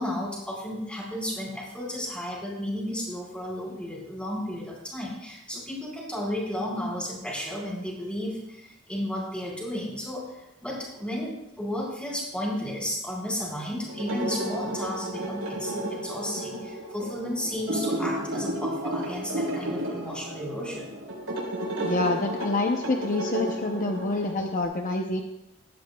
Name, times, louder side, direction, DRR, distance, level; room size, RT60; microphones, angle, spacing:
voice 1, 0.0-21.0, left 1 dB, 5° left, -3 dB, 4.6 m, -33 dB
sound 1, 13.9-24.6, right 1 dB, 90° right, 4.4 m, -32 dB
voice 2, 21.8-25.2, left 2 dB, 40° left, 3 dB, 0.7 m, -27 dB
17.5 x 13.0 x 2.3 m, 0.90 s
head